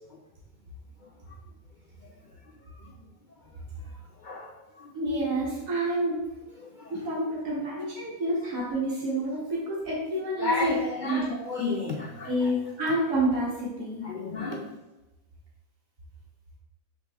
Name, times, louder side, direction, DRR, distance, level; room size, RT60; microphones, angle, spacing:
voice 1, 4.9-6.2 6.9-10.7 11.1-11.8 12.2-14.0, right 1 dB, 60° right, -6 dB, 1.9 m, -28 dB
voice 2, 10.4-12.5 14.0-14.6, left 3 dB, 90° left, 1 dB, 0.4 m, -33 dB
6.3 x 5.1 x 3.5 m, 1.1 s
omnidirectional pair, 1.6 m